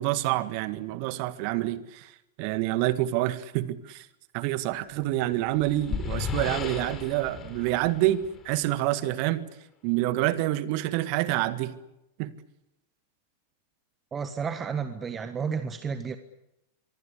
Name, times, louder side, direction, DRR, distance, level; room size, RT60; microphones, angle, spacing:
voice 1, 0.0-2.1 2.4-4.1 4.3-9.5 9.8-11.7 12.2-12.3, right 15 dB, 45° right, 1.8 m, -27 dB
sound 1, 5.1-8.8, left 6 dB, 25° left, 4.1 m, -35 dB
voice 2, 14.1-16.2, right 6 dB, 20° right, 1.5 m, -31 dB
25.5 x 23.5 x 8.4 m
figure-of-eight pair, 90°, 0 cm